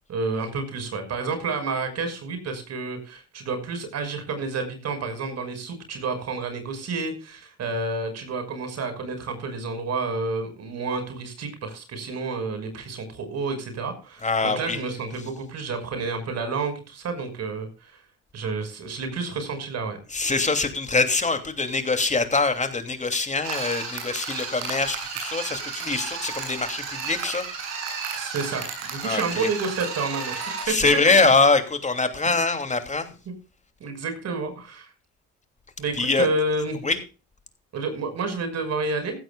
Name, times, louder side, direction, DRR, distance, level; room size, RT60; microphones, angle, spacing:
voice 1, 0.1-18.0 18.3-20.0 28.1-30.7 33.3-33.4 33.8-34.9 35.8-36.8 37.7-39.2, right 3 dB, 60° right, 8 dB, 5.9 m, -30 dB
voice 2, 14.2-14.8 20.1-27.4 29.0-29.5 30.6-33.1 35.9-36.3 36.8-37.0, left 3 dB, 25° left, 7 dB, 2.9 m, -23 dB
sound 1, 23.4-30.7, right 5 dB, 90° right, 7.2 m, -33 dB
15.5 x 15.5 x 2.4 m, 0.32 s
supercardioid pair, 70°, 30 cm